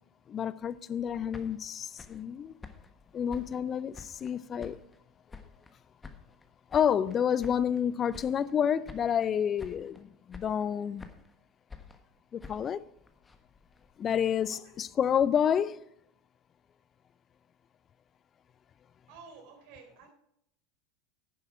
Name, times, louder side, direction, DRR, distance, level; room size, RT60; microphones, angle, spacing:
voice 1, 0.3-2.5 3.1-4.8 6.7-11.1 12.3-12.9 14.0-15.9, left 8 dB, 30° left, 0.4 m, -29 dB
sound 1, 1.1-4.3 4.6-5.7 6.0-7.8 8.1-8.6 8.8-9.3 9.6-10.0 10.3-11.4 11.7-13.9, left 4 dB, 15° left, 1.4 m, -50 dB
voice 2, 19.1-20.1, right 5 dB, 55° right, 4.0 m, -52 dB
10.5 x 10.0 x 4.7 m
figure-of-eight pair, 80°, 0 cm